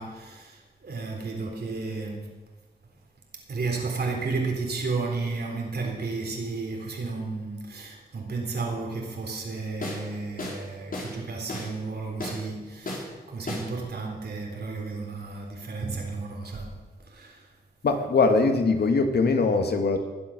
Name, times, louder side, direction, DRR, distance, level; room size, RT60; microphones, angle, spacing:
voice 1, 0.0-2.3 3.5-16.7 17.1-17.4 18.4-18.5, right 3 dB, 70° right, 1 dB, 3.8 m, -33 dB
sound 1, 9.8-10.1 10.4-10.6 10.9-11.2 11.5-11.7 12.2-12.4 12.9-13.1 13.5-13.7, left 1 dB, 55° left, 4.5 m, -34 dB
voice 2, 17.8-20.0, left 3 dB, 70° left, 6 dB, 1.9 m, -22 dB
20.5 x 7.7 x 6.6 m, 1.3 s
cardioid pair, 55°, 17 cm